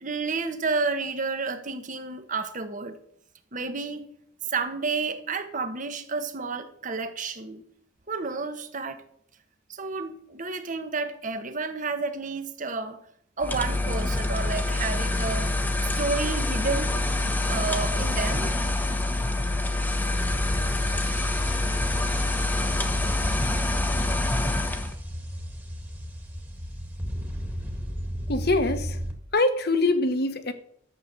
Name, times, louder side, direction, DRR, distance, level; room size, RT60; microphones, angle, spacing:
voice 1, 0.0-3.0 3.5-4.0 4.5-7.6 8.1-9.0 9.7-13.0 13.4-15.5 16.0-16.9 17.2-18.5, right 4 dB, 40° right, 9 dB, 1.3 m, -31 dB
sound 1, 13.4-25.0, left 2 dB, 10° left, 1.0 m, -26 dB
sound 2, 20.1-29.1, equal, 10° right, 1.7 m, -35 dB
voice 2, 28.3-29.0 29.3-30.5, left 2 dB, 50° left, 10 dB, 1.3 m, -23 dB
13.0 x 7.8 x 6.8 m, 0.69 s
head